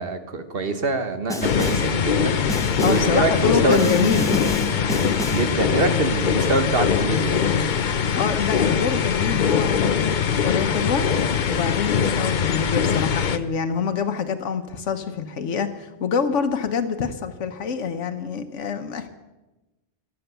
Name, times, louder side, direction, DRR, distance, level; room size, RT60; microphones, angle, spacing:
voice 1, 0.0-3.9 5.2-7.7, right 2 dB, 55° right, 8 dB, 1.4 m, -25 dB
Snare drum, 1.3-2.0 2.5-3.2 3.7-5.6, left 1 dB, 5° left, 1.2 m, -29 dB
sound 1, 1.4-13.4, left 7 dB, 50° left, 0.7 m, -22 dB
voice 2, 2.8-4.4 5.8-6.0 8.2-19.1, left 6 dB, 90° left, 7 dB, 1.3 m, -26 dB
14.0 x 11.5 x 6.8 m, 1.1 s
omnidirectional pair, 1.2 m